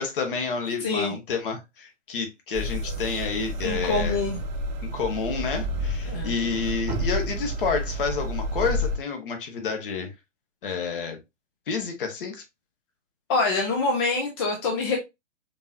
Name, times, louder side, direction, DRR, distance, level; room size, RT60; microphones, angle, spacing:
voice 1, 0.0-4.2 4.9-10.1 10.6-11.2 11.7-12.4, left 5 dB, 45° left, 1.3 m, -29 dB
voice 2, 0.8-1.1 3.6-4.4 6.1-6.3 13.3-15.0, left 3 dB, 20° left, 0.6 m, -25 dB
sound 1, 2.5-9.0, equal, 35° right, 0.8 m, -30 dB
5.1 x 2.9 x 2.7 m
figure-of-eight pair, 120°, 37 cm